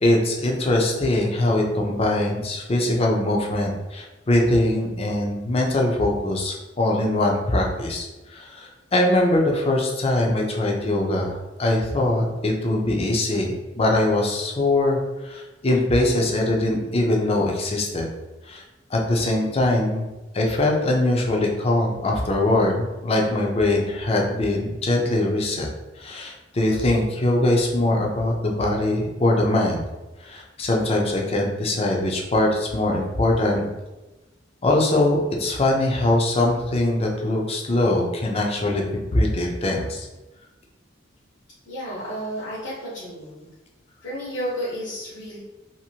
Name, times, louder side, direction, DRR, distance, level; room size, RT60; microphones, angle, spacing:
voice 1, 0.0-8.1 8.3-18.1 18.5-18.6 18.9-20.1 20.3-25.7 26.0-29.8 30.2-33.6 34.6-38.8 39.1-40.1, left 1 dB, 35° left, 0 dB, 0.5 m, -22 dB
voice 2, 41.7-43.5 44.0-45.4, equal, 85° left, -10 dB, 1.0 m, -32 dB
2.8 x 2.6 x 2.7 m, 1.1 s
head